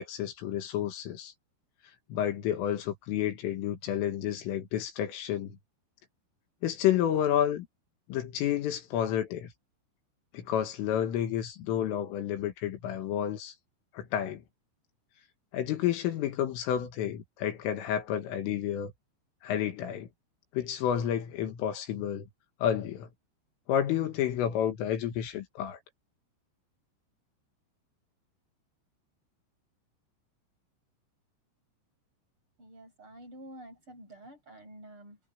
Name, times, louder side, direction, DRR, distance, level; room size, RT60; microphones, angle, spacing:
voice 1, 0.0-1.3 2.1-5.6 6.6-7.7 8.1-9.5 10.3-13.6 13.9-14.4 15.5-18.9 19.4-20.1 20.5-22.3 22.6-23.1 23.7-25.8, left 10 dB, 75° left, 4.4 m, -30 dB
voice 2, 32.6-35.2, right 1 dB, 25° right, 8.3 m, -49 dB
omnidirectional pair, 5.9 m